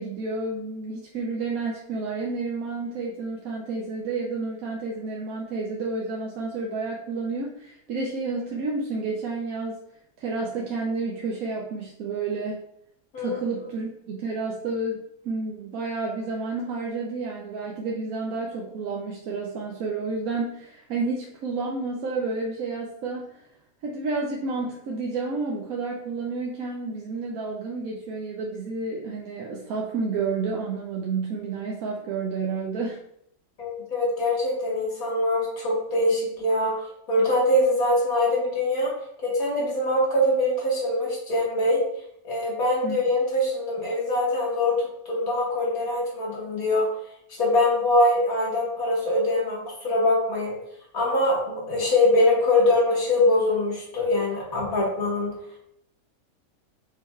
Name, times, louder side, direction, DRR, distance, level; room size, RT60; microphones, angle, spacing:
voice 1, 0.0-9.8 10.2-12.6 13.2-15.0 15.2-23.4 23.8-33.0 42.8-43.0, right 3 dB, 90° right, -2 dB, 1.1 m, -30 dB
voice 2, 33.6-36.7 37.1-38.9 39.2-41.8 42.2-46.9 47.3-50.5 50.9-55.3, left 1 dB, 85° left, -4 dB, 2.0 m, -23 dB
5.4 x 2.3 x 4.2 m, 0.75 s
omnidirectional pair, 1.5 m